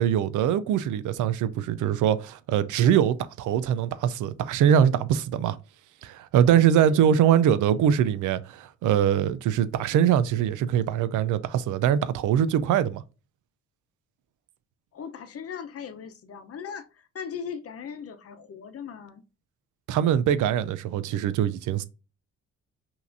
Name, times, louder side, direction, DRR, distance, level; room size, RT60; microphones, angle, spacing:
voice 1, 0.0-5.6 6.0-13.0 19.9-21.8, right 9 dB, 80° right, 0.5 m, -23 dB
voice 2, 6.4-7.3 14.9-19.2, left 7 dB, 50° left, 0.8 m, -39 dB
5.6 x 2.7 x 2.6 m
cardioid pair, 90°, 30 cm